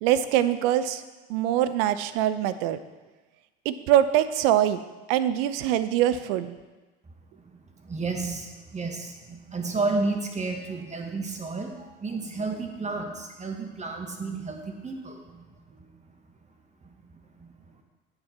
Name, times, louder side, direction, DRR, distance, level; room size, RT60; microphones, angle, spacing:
voice 1, 0.0-1.0 1.3-2.8 3.7-4.8 5.1-6.6, right 11 dB, 65° right, 13 dB, 0.6 m, -23 dB
voice 2, 7.8-16.0 16.8-17.5, right 3 dB, 20° right, 3 dB, 1.5 m, -32 dB
8.6 x 6.8 x 4.3 m, 1.2 s
hypercardioid pair, 75°, 31 cm